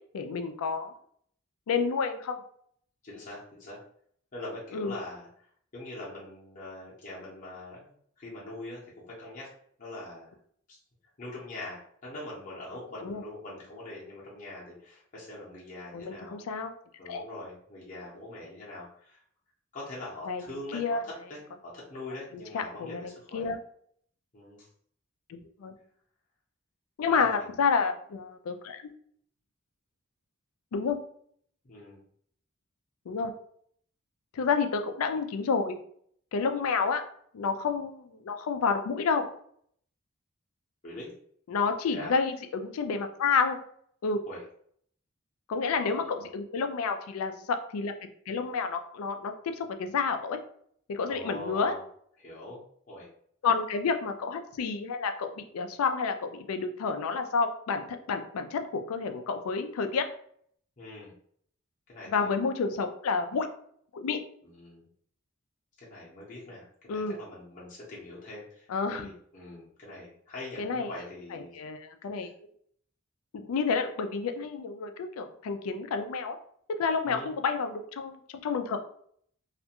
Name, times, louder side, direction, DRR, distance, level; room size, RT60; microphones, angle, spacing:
voice 1, 0.1-0.9 1.7-2.3 4.7-4.9 13.0-13.2 15.9-16.7 17.1-17.2 20.3-20.4 20.7-21.0 22.5-23.6 25.3-25.7 27.0-28.9 30.7-31.0 33.1-33.3 34.3-35.8 36.3-37.0 37.3-39.2 41.5-43.6 44.0-44.2 45.5-47.9 48.3-50.4 50.9-51.7 53.4-60.1 62.1-63.5 63.9-64.2 66.9-67.2 68.7-69.1 70.6-70.9 71.3-72.3 73.3-76.4 76.8-78.1 78.4-78.8, left 5 dB, 85° left, 7 dB, 0.4 m, -29 dB
voice 2, 3.0-3.8 4.3-5.5 5.7-7.9 8.2-8.8 9.1-9.5 9.8-10.3 10.7-10.8 11.2-16.4 17.0-19.2 19.7-23.5 24.3-24.7 27.1-27.6 31.6-32.0 40.8-41.1 41.9-42.1 44.3-44.4 45.7-46.3 51.1-51.8 52.2-52.6 52.9-53.1 60.8-61.1 61.9-62.4 64.4-64.9 65.8-71.6 72.2-72.3 77.1-77.3, left 1 dB, 35° left, -6 dB, 0.7 m, -43 dB
2.4 x 2.2 x 2.8 m, 0.63 s
head